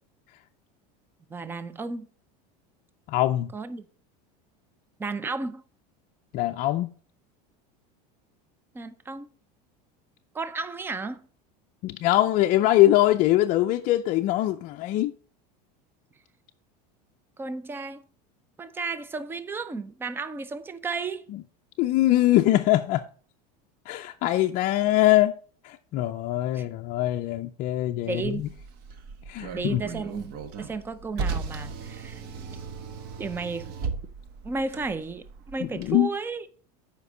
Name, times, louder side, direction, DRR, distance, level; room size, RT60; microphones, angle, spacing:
voice 1, 1.3-2.1 3.5-3.8 5.0-5.6 8.7-9.3 10.3-11.3 17.4-18.0 18.6-21.3 26.5-26.7 28.1-28.4 29.5-32.2 33.2-33.7 34.4-36.4, right 4 dB, 10° right, 0.5 m, -33 dB
voice 2, 3.1-3.5 6.3-6.9 11.8-15.1 21.3-21.4 21.8-23.1 23.9-25.3 25.6-28.5 29.3-29.8 35.6-36.1, left 15 dB, 45° left, 0.5 m, -23 dB
Car, 28.2-35.9, right 5 dB, 50° right, 1.1 m, -36 dB
8.1 x 5.1 x 4.9 m
supercardioid pair, 140°, 20 cm